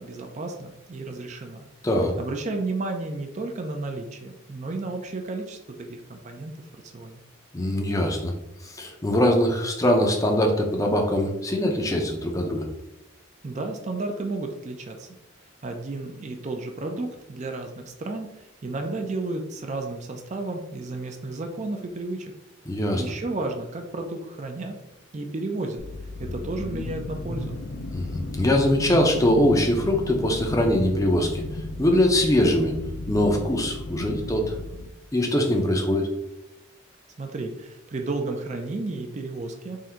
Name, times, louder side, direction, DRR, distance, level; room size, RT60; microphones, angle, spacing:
voice 1, 0.0-1.7 2.2-6.6 6.8-7.2 13.4-15.1 15.6-22.3 22.9-24.8 25.1-25.8 26.2-27.5 37.2-39.8, right 2 dB, 35° right, 4 dB, 0.4 m, -32 dB
voice 2, 7.5-8.3 8.7-12.7 22.7-23.0 27.9-31.4 31.8-32.7 33.1-34.5 35.1-36.1, left 1 dB, 15° left, 2 dB, 0.5 m, -22 dB
sound 1, 25.8-34.9, left 2 dB, 65° left, 0.5 m, -34 dB
3.7 x 2.6 x 4.3 m, 0.95 s
head